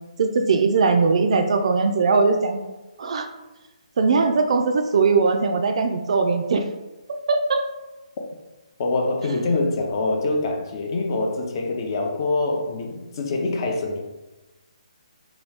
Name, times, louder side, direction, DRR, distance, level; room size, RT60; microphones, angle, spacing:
voice 1, 0.2-2.6 3.0-3.3 4.0-6.6 7.3-7.6, right 4 dB, 55° right, 6 dB, 0.3 m, -20 dB
voice 2, 8.8-14.0, left 2 dB, 40° left, 2 dB, 0.5 m, -25 dB
2.9 x 2.3 x 3.3 m, 1.1 s
hypercardioid pair, 160°, 4 cm